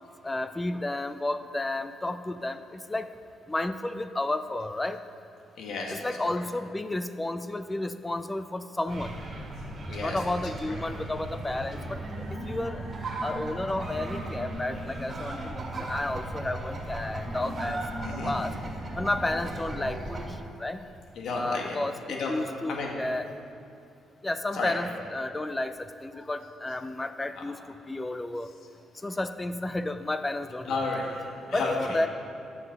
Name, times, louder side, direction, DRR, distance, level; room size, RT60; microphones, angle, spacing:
voice 1, 0.2-3.1 3.5-5.0 5.9-9.2 10.0-12.0 12.3-12.8 13.2-17.8 18.3-18.5 19.0-20.8 21.3-23.3 24.2-25.7 26.0-27.6 27.9-28.5 29.0-30.8 31.5-32.1, left 2 dB, 15° left, 11 dB, 0.5 m, -32 dB
voice 2, 5.6-6.4 9.9-10.4 18.0-18.3 21.2-21.8 22.1-22.3 22.7-22.9 24.5-24.7 27.4-27.5 30.7-32.0, left 3 dB, 70° left, -1 dB, 1.8 m, -32 dB
sound 1, 8.9-20.3, right 2 dB, 40° right, 1.8 m, -36 dB
10.5 x 7.2 x 5.3 m, 2.5 s
cardioid pair, 90°, 0 cm